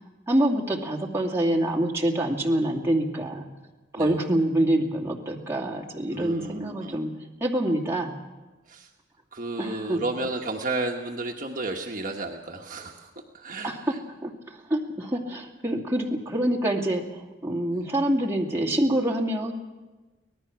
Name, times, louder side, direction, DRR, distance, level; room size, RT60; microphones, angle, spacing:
voice 1, 0.3-3.5 3.9-7.1 7.4-8.2 9.6-10.0 13.6-13.8 14.2-19.5, right 1 dB, 15° right, -1 dB, 2.4 m, -26 dB
voice 2, 6.1-7.0 8.7-8.9 9.3-14.0 17.7-17.8, right 2 dB, 45° right, 1 dB, 1.3 m, -33 dB
25.0 x 18.5 x 6.0 m, 1.2 s
head